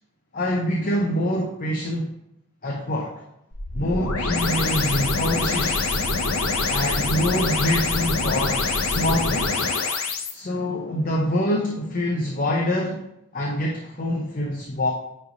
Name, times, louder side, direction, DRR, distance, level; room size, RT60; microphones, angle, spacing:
voice 1, 0.3-2.1 2.6-3.2 3.7-6.0 6.7-9.6 10.3-13.0 13.3-14.9, left 1 dB, 40° left, -1 dB, 0.8 m, -25 dB
sound 1, 3.5-10.3, left 3 dB, 70° left, 0.9 m, -24 dB
9.8 x 3.3 x 3.9 m, 0.81 s
head